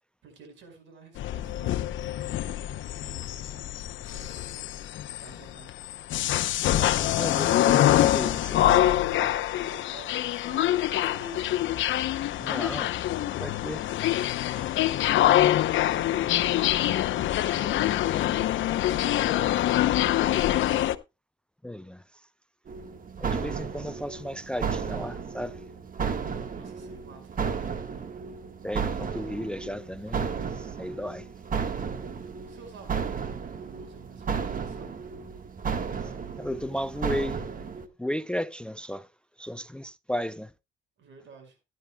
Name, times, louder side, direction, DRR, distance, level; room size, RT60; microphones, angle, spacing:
voice 1, 0.2-2.4 2.9-4.8 5.1-5.7 9.5-11.5 15.2-17.8 18.1-19.3 20.0-21.0 26.5-27.4 28.3-28.4 32.5-33.2 33.6-35.0 41.0-41.6, right 3 dB, 75° right, 5.0 m, -49 dB
sound 1, 1.2-20.9, left 13 dB, 75° left, 0.7 m, -25 dB
voice 2, 6.8-9.3 12.4-13.0 13.4-13.8 14.6-14.7 21.6-22.3 23.2-25.6 28.6-31.3 36.0-37.4 38.0-39.1 39.4-40.5, equal, 5° left, 0.5 m, -35 dB
sound 2, 22.7-37.9, right 6 dB, 45° right, 1.5 m, -33 dB
16.0 x 10.5 x 2.2 m
cardioid pair, 90°, 20 cm